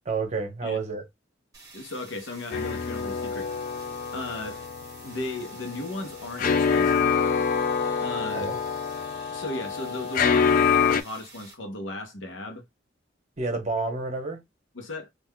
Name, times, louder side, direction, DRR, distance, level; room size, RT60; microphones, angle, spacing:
voice 1, 0.0-1.0 8.3-8.6 13.4-14.4, right 4 dB, 35° right, 0.9 m, -29 dB
sound 1, 1.5-11.5, right 3 dB, 20° right, 1.3 m, -49 dB
voice 2, 1.7-3.5 4.1-4.6 5.0-7.1 8.0-8.5 9.3-12.6 14.7-15.1, left 2 dB, 80° left, 0.8 m, -36 dB
sound 2, 2.5-11.0, left 6 dB, 45° left, 0.3 m, -26 dB
3.6 x 2.4 x 2.2 m
head